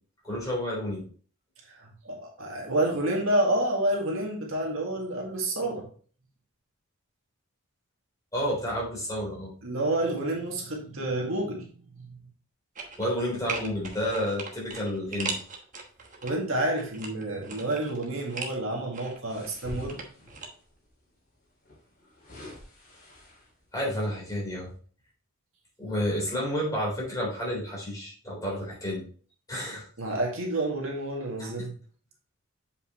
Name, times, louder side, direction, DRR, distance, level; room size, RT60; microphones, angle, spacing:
voice 1, 0.2-1.0 8.3-9.5 13.0-15.4 23.7-24.7 25.8-29.0 29.5-29.9 31.4-31.5, equal, 15° left, -5 dB, 3.6 m, -30 dB
voice 2, 1.7-5.9 9.6-12.2 16.2-20.0 30.0-31.7, right 1 dB, 70° right, -1 dB, 1.9 m, -29 dB
sound 1, 12.7-13.2 13.5-16.3 16.7-18.6 18.9-20.5 20.8-20.9, right 4 dB, 35° right, 1.2 m, -38 dB
sound 2, 19.3-20.6 21.6-23.7 24.2-24.4, left 1 dB, 45° left, 3.1 m, -45 dB
7.6 x 5.4 x 3.0 m, 0.43 s
head